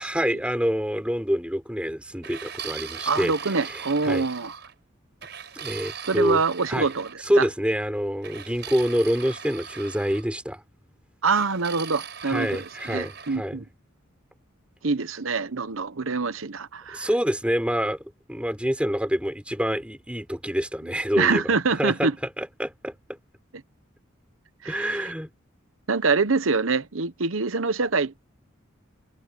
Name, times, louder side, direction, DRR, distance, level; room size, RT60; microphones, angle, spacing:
voice 1, 0.0-3.3 3.6-4.3 5.6-6.4 6.7-6.9 7.3-10.6 12.3-13.6 16.9-18.0 18.3-21.4 21.8-22.1 22.4-22.9 24.7-25.3, equal, 5° right, 5.4 m, -26 dB
sound 1, 2.2-4.7 5.2-7.2 8.2-10.3 11.3-13.4, right 7 dB, 55° right, 5.7 m, -39 dB
voice 2, 3.0-4.5 6.0-7.1 7.4-7.5 11.2-13.6 14.8-17.1 21.2-22.1 24.6-25.1 25.9-28.2, right 4 dB, 80° right, 1.1 m, -25 dB
head